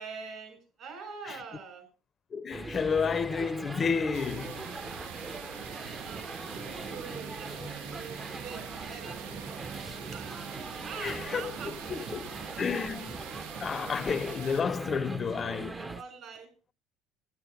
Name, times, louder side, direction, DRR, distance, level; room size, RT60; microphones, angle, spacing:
voice 1, 0.0-1.9 6.0-9.2 9.5-10.4 10.8-13.1 15.2-16.5, right 5 dB, 55° right, 7.0 m, -45 dB
voice 2, 2.3-4.7 7.6-7.7 11.0-12.3 12.6-13.2 13.6-15.8, left 6 dB, 35° left, 0.5 m, -31 dB
sound 1, 2.5-16.0, right 3 dB, 15° right, 0.6 m, -41 dB
sound 2, 4.1-14.6, right 9 dB, 90° right, 0.7 m, -44 dB
12.0 x 11.0 x 5.3 m
supercardioid pair, 100°, 0 cm